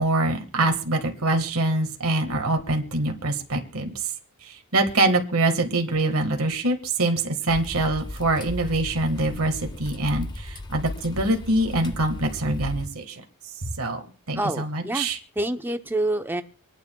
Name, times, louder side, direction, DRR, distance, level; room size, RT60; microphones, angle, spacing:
voice 1, 0.0-3.9 4.4-13.2 13.8-14.0 14.3-15.2, right 2 dB, 70° right, 4 dB, 1.7 m, -24 dB
Fire crackling in fireplace, 7.5-12.9, left 1 dB, 20° left, 0.8 m, -36 dB
voice 2, 14.3-15.1 15.4-16.4, right 1 dB, 10° right, 7 dB, 0.7 m, -27 dB
26.0 x 9.7 x 2.3 m, 0.38 s
head